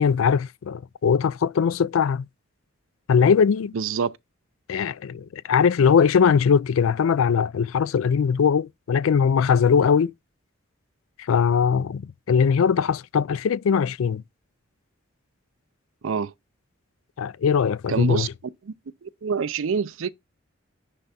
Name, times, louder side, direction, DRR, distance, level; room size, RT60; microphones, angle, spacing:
voice 1, 0.0-2.3 3.1-3.7 4.7-10.1 11.3-14.2 17.2-18.3, left 6 dB, 80° left, 0.4 m, -20 dB
voice 2, 3.7-4.1 16.0-16.3 17.9-18.3 18.7-18.8 19.0-20.1, right 6 dB, 75° right, 0.5 m, -26 dB
10.0 x 3.4 x 4.2 m
head